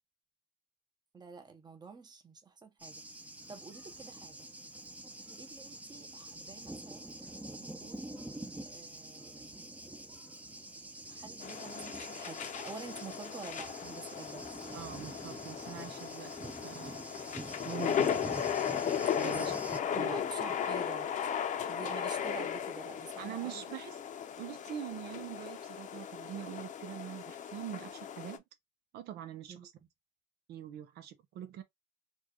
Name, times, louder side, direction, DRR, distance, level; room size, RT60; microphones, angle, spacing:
voice 1, 1.1-3.0 3.5-4.5 5.4-7.2 7.6-8.3 8.6-9.8 11.1-14.6 19.2-19.4 19.9-21.1 21.7-23.7 29.5-29.7, right 5 dB, 25° right, 0.9 m, -48 dB
Thunder, 2.8-19.8, right 1 dB, 10° right, 0.6 m, -46 dB
sound 1, 11.4-28.4, left 8 dB, 50° left, 0.7 m, -36 dB
voice 2, 14.7-16.3 16.6-17.0 17.6-18.4 19.2-19.5 20.0-20.2 23.2-24.0 24.4-28.4 28.9-29.7 30.5-31.6, right 11 dB, 75° right, 0.8 m, -44 dB
4.4 x 2.4 x 2.9 m
cardioid pair, 110°, 17 cm